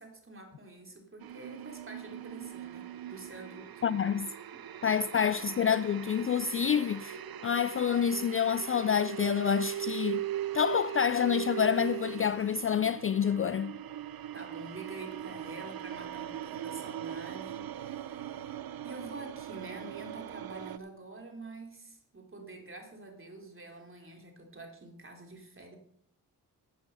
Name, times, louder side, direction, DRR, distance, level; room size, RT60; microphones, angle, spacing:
voice 1, 0.0-3.7 4.5-4.7 14.3-18.6 18.8-25.8, right 2 dB, 30° right, 3.5 m, -47 dB
sound 1, 1.2-20.8, right 11 dB, 60° right, 0.8 m, -40 dB
voice 2, 3.8-4.3 4.8-10.2 10.5-13.8, left 7 dB, 35° left, 0.4 m, -28 dB
13.0 x 8.2 x 5.5 m
cardioid pair, 65°, 41 cm